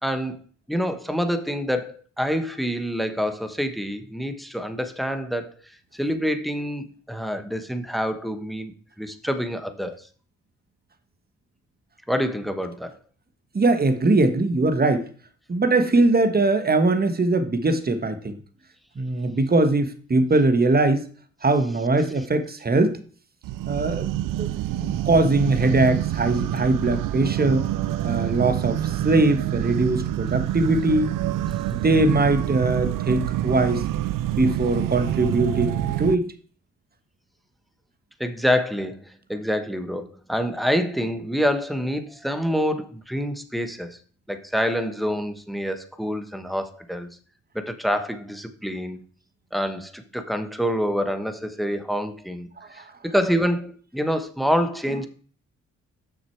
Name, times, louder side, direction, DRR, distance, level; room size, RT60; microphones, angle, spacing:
voice 1, 0.0-0.4 0.7-5.5 5.9-8.7 9.0-10.1 12.1-13.0 38.2-44.0 44.3-47.1 47.5-49.0 49.5-55.1, equal, ahead, 1.2 m, -26 dB
voice 2, 13.5-15.1 15.5-18.4 19.0-21.1 21.4-23.0 23.7-27.6 28.0-31.1 31.7-33.8 34.3-36.3 52.6-52.8, right 2 dB, 30° right, 1.3 m, -21 dB
sound 1, 23.4-36.1, right 13 dB, 75° right, 0.5 m, -26 dB
6.5 x 6.4 x 4.6 m
supercardioid pair, 60°, 32 cm